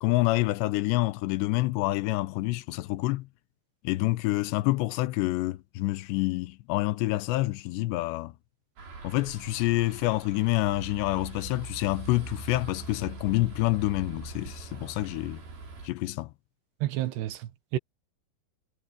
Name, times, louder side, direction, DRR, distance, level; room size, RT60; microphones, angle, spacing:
voice 1, 0.0-3.3 3.8-8.3 9.0-15.4 15.8-16.3, left 19 dB, 90° left, 3.0 m, -27 dB
sound 1, 8.8-15.9, right 3 dB, 60° right, 7.5 m, -42 dB
voice 2, 16.8-17.8, right 14 dB, 80° right, 3.3 m, -30 dB
omnidirectional pair, 4.9 m